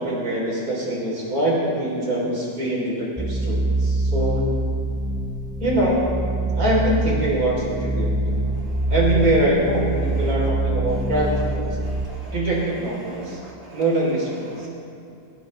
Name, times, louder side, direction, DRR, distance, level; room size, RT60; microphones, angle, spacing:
voice 1, 0.0-4.5 5.6-6.1 6.5-8.4 8.9-11.8 12.3-13.4 13.7-14.7, right 1 dB, 60° right, -4 dB, 4.0 m, -23 dB
sound 1, 3.2-12.1, right 2 dB, 5° right, 0.3 m, -24 dB
voice 2, 11.8-12.4 13.0-13.8 14.5-14.7, right 1 dB, 40° right, -3 dB, 2.7 m, -44 dB
18.5 x 17.5 x 3.3 m, 2.6 s
omnidirectional pair, 1.8 m